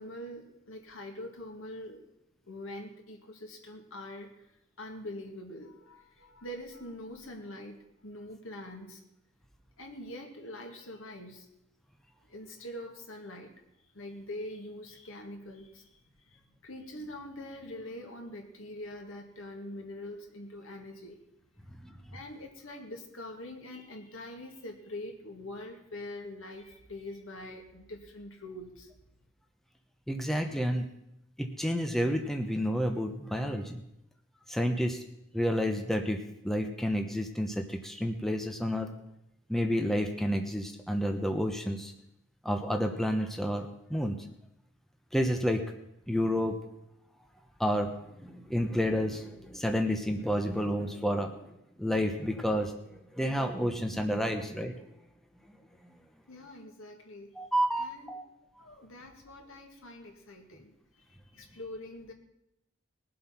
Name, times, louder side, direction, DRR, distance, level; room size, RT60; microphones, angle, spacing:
voice 1, 0.0-2.0 2.4-9.0 9.8-11.5 12.2-13.5 13.8-21.2 22.1-28.9 56.3-57.3 57.8-58.2 58.6-60.7 61.0-62.1, left 1 dB, 75° left, 3 dB, 2.3 m, -44 dB
voice 2, 30.1-30.9 31.4-33.8 34.5-35.0 35.3-36.2 36.4-38.9 39.5-41.9 42.4-44.2 45.1-45.6 46.1-46.6 47.6-47.9 48.2-51.3 51.8-54.7 57.4-58.2, equal, ahead, 4 dB, 0.9 m, -30 dB
20.0 x 7.8 x 5.9 m, 0.82 s
head